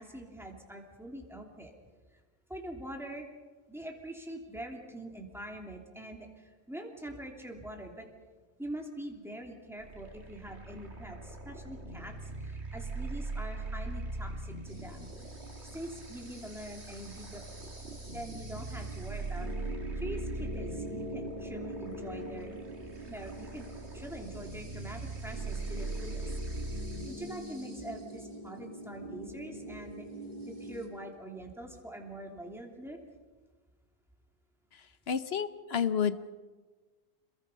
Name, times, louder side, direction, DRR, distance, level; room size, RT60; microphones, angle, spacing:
voice 1, 0.0-1.7 2.5-3.3 3.7-8.1 8.6-15.1 15.6-17.4 18.1-19.5 19.9-22.6 23.1-23.7 23.9-26.4 27.1-30.1 30.4-33.0, right 1 dB, ahead, 1 dB, 3.0 m, -44 dB
sound 1, 9.8-27.1, right 2 dB, 75° right, 2.5 m, -41 dB
sound 2, 14.7-30.9, right 1 dB, 40° right, 3.2 m, -45 dB
voice 2, 35.1-36.3, left 7 dB, 65° left, 12 dB, 1.2 m, -30 dB
28.0 x 22.0 x 5.6 m, 1.4 s
omnidirectional pair, 1.2 m